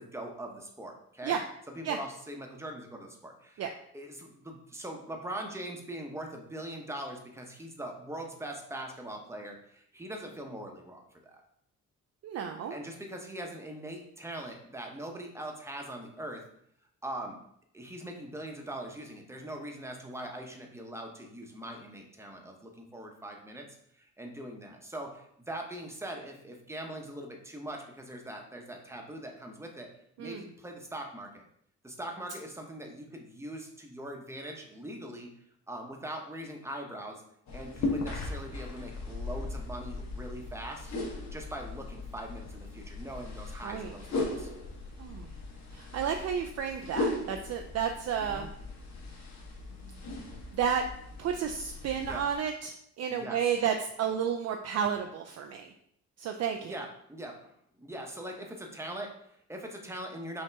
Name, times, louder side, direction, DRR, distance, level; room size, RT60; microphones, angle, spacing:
voice 1, 0.0-1.4 1.7-3.6 3.9-11.4 12.7-16.4 17.0-17.4 17.7-23.7 23.9-29.9 30.2-31.4 31.8-35.3 35.7-37.2 37.5-40.9 41.3-44.5 48.2-48.5 50.2-50.4 52.0-52.2 53.1-53.4 56.6-57.5 57.8-60.4, right 1 dB, 10° right, 2 dB, 0.9 m, -41 dB
voice 2, 12.2-12.7 30.2-30.4 43.6-43.9 45.0-45.3 45.7-48.5 50.5-50.8 51.2-55.7 56.2-56.7, right 8 dB, 55° right, 4 dB, 0.5 m, -32 dB
sound 1, 37.5-52.4, left 2 dB, 65° left, 1.2 m, -38 dB
5.5 x 2.8 x 3.4 m, 0.71 s
cardioid pair, 90°, 30 cm